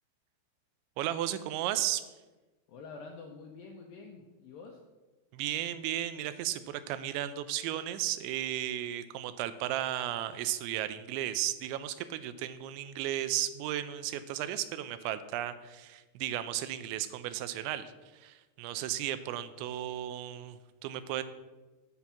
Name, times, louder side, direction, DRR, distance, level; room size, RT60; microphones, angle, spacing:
voice 1, 1.0-2.0 5.3-21.2, right 12 dB, 90° right, 12 dB, 3.0 m, -34 dB
voice 2, 2.7-4.8, left 4 dB, 80° left, 1 dB, 2.0 m, -47 dB
7.9 x 7.3 x 5.6 m, 1.2 s
omnidirectional pair, 5.2 m